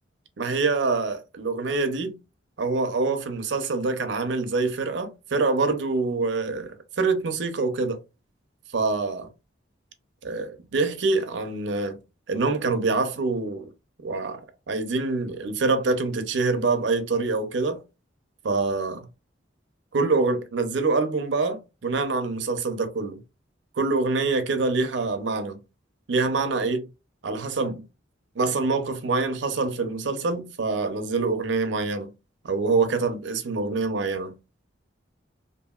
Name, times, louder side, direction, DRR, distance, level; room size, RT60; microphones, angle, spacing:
voice 1, 0.4-2.2 2.6-8.0 8.7-9.3 10.2-12.0 12.3-13.7 14.0-14.4 14.7-17.8 18.4-19.1 19.9-23.2 23.7-25.6 26.1-26.9 27.2-27.8 28.4-32.1 32.4-34.4, right 3 dB, 65° right, 0.5 m, -25 dB
2.7 x 2.6 x 2.3 m
head